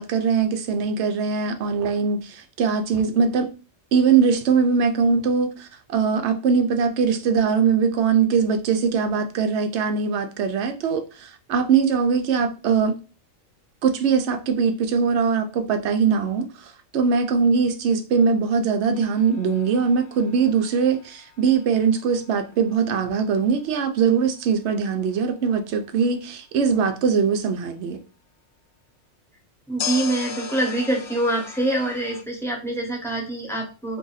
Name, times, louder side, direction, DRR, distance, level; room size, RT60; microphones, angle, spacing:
voice 1, 0.0-3.5 3.9-13.0 13.8-28.0, right 6 dB, 65° right, 0.8 m, -21 dB
sound 1, 18.9-22.0 29.8-32.2, left 7 dB, 75° left, 1.0 m, -36 dB
voice 2, 29.7-34.0, right 1 dB, ahead, 0.8 m, -25 dB
2.7 x 2.5 x 3.9 m
omnidirectional pair, 1.4 m